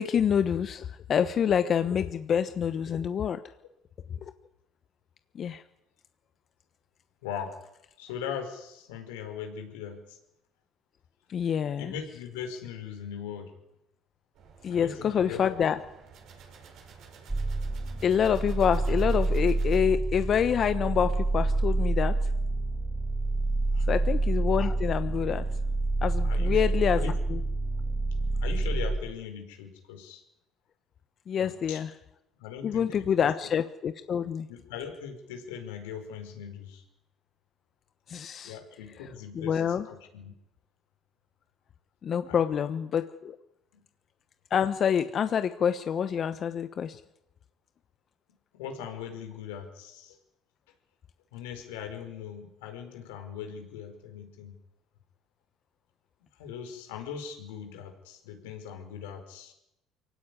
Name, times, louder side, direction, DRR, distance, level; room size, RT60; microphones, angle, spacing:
voice 1, 0.0-3.4 4.2-4.3 5.3-5.6 11.3-11.9 14.6-15.8 18.0-22.2 23.9-25.5 26.0-27.4 31.3-31.9 32.6-34.5 38.1-38.6 39.0-39.1 39.3-39.9 42.0-43.4 44.5-47.0, left 8 dB, 45° left, 10 dB, 1.1 m, -27 dB
voice 2, 7.2-7.5 8.0-10.2 11.8-13.5 14.7-15.5 23.7-24.0 26.2-27.1 28.4-30.2 31.4-31.8 32.4-33.3 34.5-36.8 38.3-39.6 39.9-40.3 42.2-42.6 43.7-43.8 48.5-50.2 51.3-54.6 56.4-59.5, left 7 dB, 90° left, 4 dB, 5.0 m, -40 dB
sound 1, 14.3-19.8, right 5 dB, 65° right, 6.7 m, -52 dB
sound 2, 17.3-29.0, right 2 dB, 15° right, 1.8 m, -28 dB
24.0 x 17.0 x 9.9 m, 0.87 s
supercardioid pair, 80°, 0 cm